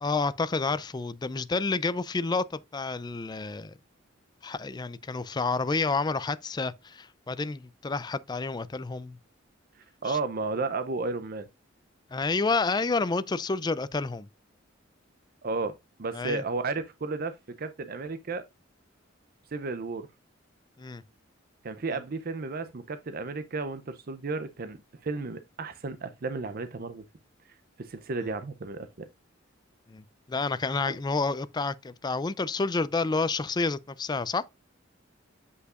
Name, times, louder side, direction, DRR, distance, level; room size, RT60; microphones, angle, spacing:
voice 1, 0.0-3.8 4.4-9.2 10.0-10.2 12.1-14.3 16.1-16.4 20.8-21.0 29.9-34.4, left 3 dB, 20° left, 0.4 m, -29 dB
voice 2, 10.0-11.5 15.4-15.7 16.0-18.4 19.5-20.1 21.6-27.0 27.8-29.1, right 3 dB, 50° right, 0.6 m, -33 dB
8.2 x 5.5 x 2.4 m
head